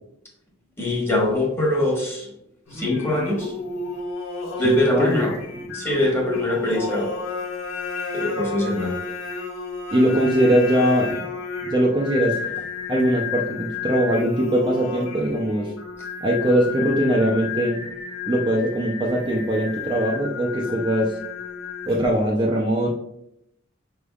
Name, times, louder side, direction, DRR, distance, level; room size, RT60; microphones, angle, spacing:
voice 1, 0.8-2.3 2.7-3.5 4.6-5.3 5.7-7.1 8.1-8.9, left 1 dB, 10° left, -2 dB, 1.2 m, -22 dB
Singing, 2.7-22.3, left 4 dB, 85° left, 1.4 m, -32 dB
voice 2, 4.6-5.2 9.9-11.2 11.7-12.4 12.9-15.7 16.2-17.8 18.3-21.2 21.9-23.0, right 1 dB, 25° right, -2 dB, 0.4 m, -21 dB
4.9 x 3.4 x 2.3 m, 0.77 s
head